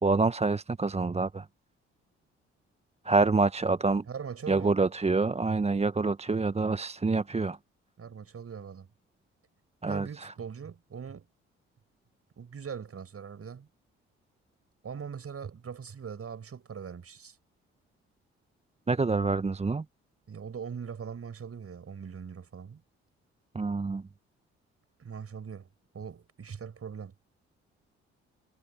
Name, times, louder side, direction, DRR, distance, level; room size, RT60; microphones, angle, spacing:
voice 1, 0.0-1.4 3.0-4.0 4.5-7.6 9.8-10.1 18.9-19.8 23.5-24.0, right 3 dB, 20° right, 0.9 m, -26 dB
voice 2, 4.1-4.8 8.0-8.9 9.9-11.3 12.4-13.7 14.8-17.4 20.3-22.8 25.0-25.7 25.9-27.1, right 6 dB, 45° right, 6.7 m, -41 dB
hypercardioid pair, 45°, 33 cm